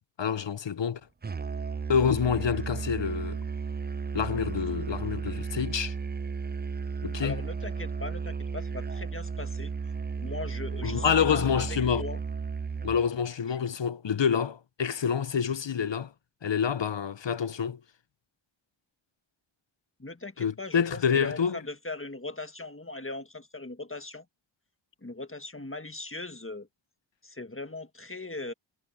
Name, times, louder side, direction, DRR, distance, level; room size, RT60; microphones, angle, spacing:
voice 1, 0.2-1.0 1.9-3.4 4.1-5.9 7.0-7.4 10.8-12.1 12.8-16.1 16.4-17.8 20.4-21.6, left 7 dB, 70° left, 0.8 m, -27 dB
Musical instrument, 1.2-13.1, right 5 dB, 25° right, 0.4 m, -34 dB
voice 2, 7.2-9.7 10.2-12.2 13.5-13.6 20.0-24.2 25.0-26.7 27.2-28.5, left 2 dB, 25° left, 1.6 m, -39 dB
wide cardioid pair, 45°, 46 cm